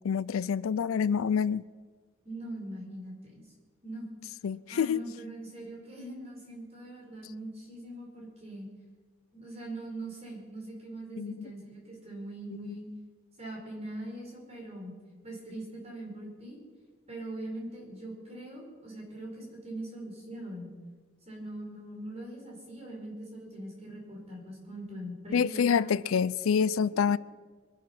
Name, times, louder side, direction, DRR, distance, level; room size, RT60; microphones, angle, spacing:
voice 1, 0.0-1.6 4.4-5.0 11.2-11.5 12.6-12.7 25.3-27.2, left 7 dB, 80° left, 0.4 m, -27 dB
voice 2, 2.2-3.4 3.8-4.1 4.7-8.7 9.3-12.8 13.4-14.9 15.2-16.6 17.1-20.7 21.3-25.9, right 1 dB, 30° right, 5.0 m, -42 dB
22.0 x 10.5 x 5.9 m
head